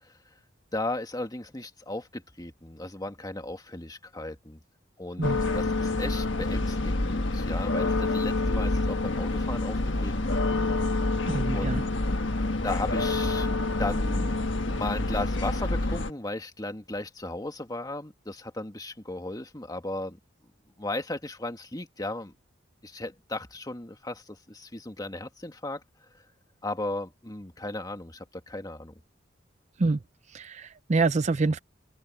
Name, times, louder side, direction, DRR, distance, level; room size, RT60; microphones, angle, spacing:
voice 1, 0.7-4.6 5.0-10.3 11.5-11.9 12.6-13.5 13.8-20.2 20.8-22.3 22.8-25.8 26.6-28.9, left 2 dB, 20° left, 1.9 m, -36 dB
sound 1, 5.2-16.1, left 2 dB, 65° left, 1.5 m, -27 dB
voice 2, 11.3-11.8 29.8-30.0 30.3-31.6, right 3 dB, 35° right, 0.5 m, -26 dB
head